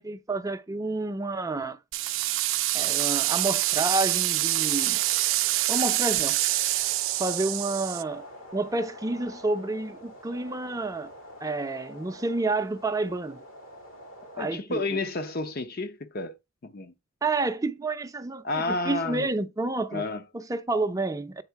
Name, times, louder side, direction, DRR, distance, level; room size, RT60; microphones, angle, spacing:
voice 1, 0.0-1.8 2.7-5.0 5.7-6.4 7.2-8.2 8.5-11.1 11.4-13.4 14.4-15.0 17.2-20.0 20.3-21.4, right 2 dB, 15° right, 0.5 m, -29 dB
sound 1, 1.9-8.0, right 17 dB, 70° right, 0.4 m, -26 dB
sound 2, 2.8-14.6, equal, 90° left, 2.8 m, -46 dB
voice 2, 14.4-16.4 16.6-16.9 18.4-19.3 19.9-20.2, left 2 dB, 50° left, 0.6 m, -30 dB
8.1 x 3.6 x 4.6 m
head